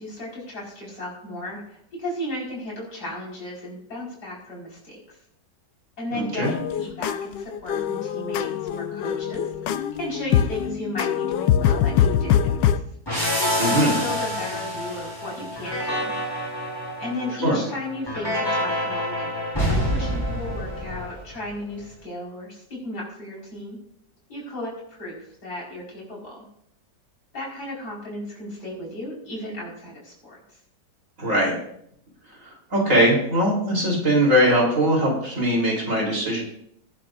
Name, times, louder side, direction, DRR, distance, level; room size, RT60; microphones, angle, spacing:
voice 1, 0.0-5.2 6.0-9.5 9.9-12.8 13.4-16.1 17.0-19.3 19.7-23.8 24.3-26.5 27.3-30.4, left 1 dB, 65° left, -4 dB, 5.5 m, -35 dB
voice 2, 6.1-6.5 13.6-13.9 17.4-17.6 31.2-31.6 32.7-36.4, equal, 45° right, -2 dB, 3.9 m, -20 dB
sound 1, 6.4-12.8, left 9 dB, 90° left, 1.3 m, -23 dB
sound 2, 13.1-21.5, equal, 15° left, 4.2 m, -27 dB
20.5 x 11.5 x 2.5 m, 0.71 s
omnidirectional pair, 1.9 m